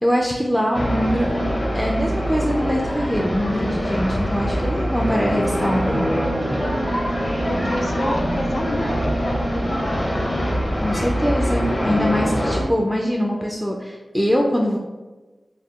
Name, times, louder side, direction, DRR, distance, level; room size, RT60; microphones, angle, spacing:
voice 1, 0.0-1.5 1.7-6.1 10.8-14.8, equal, ahead, -1 dB, 0.3 m, -23 dB
sound 1, 0.7-12.6, equal, 40° left, 0.7 m, -24 dB
Wind instrument woodwind instrument, 5.6-10.0, right 3 dB, 90° right, 0.4 m, -32 dB
voice 2, 7.5-10.6, left 2 dB, 75° left, 1 dB, 0.4 m, -30 dB
3.5 x 2.3 x 2.3 m, 1.2 s
cardioid pair, 55°, 0 cm